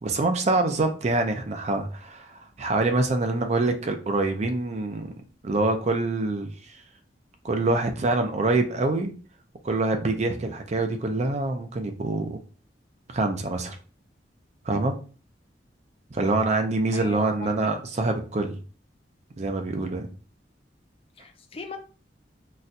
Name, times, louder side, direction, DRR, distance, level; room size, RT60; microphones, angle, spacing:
voice 1, 0.0-5.1 5.4-6.5 7.4-9.1 9.6-12.4 13.1-13.8 14.7-14.9 16.1-18.6 19.4-20.1, right 2 dB, 40° right, 0.4 m, -25 dB
voice 2, 16.9-17.7 21.2-21.8, left 4 dB, 30° left, 0.5 m, -39 dB
4.0 x 2.2 x 2.6 m
head